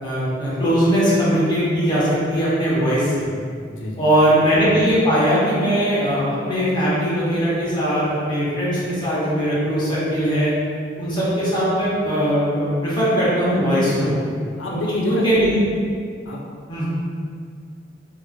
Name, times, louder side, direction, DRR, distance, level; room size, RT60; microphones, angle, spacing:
voice 1, 0.0-3.2 4.0-10.5 11.0-14.1 14.9-15.5 16.7-16.9, equal, 25° left, -9 dB, 0.7 m, -20 dB
voice 2, 3.7-4.0 14.6-15.5 16.3-16.4, left 2 dB, 90° left, -1 dB, 0.4 m, -26 dB
2.4 x 2.3 x 2.2 m, 2.2 s
head